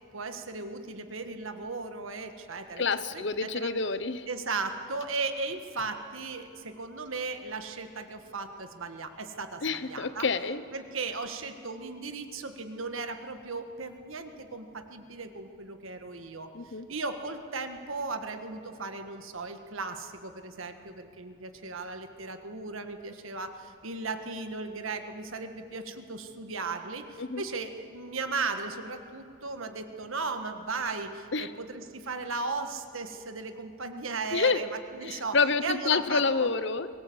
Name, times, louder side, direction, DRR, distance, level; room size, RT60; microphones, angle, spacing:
voice 1, 0.1-2.8 3.1-3.7 4.3-10.3 10.7-36.5, right 3 dB, 75° right, 7 dB, 1.6 m, -36 dB
voice 2, 2.8-4.3 9.6-10.6 16.5-16.9 27.2-27.4 31.3-31.5 34.3-34.6 35.0-36.9, left 4 dB, 55° left, 14 dB, 0.8 m, -28 dB
23.0 x 18.0 x 8.0 m, 2.4 s
head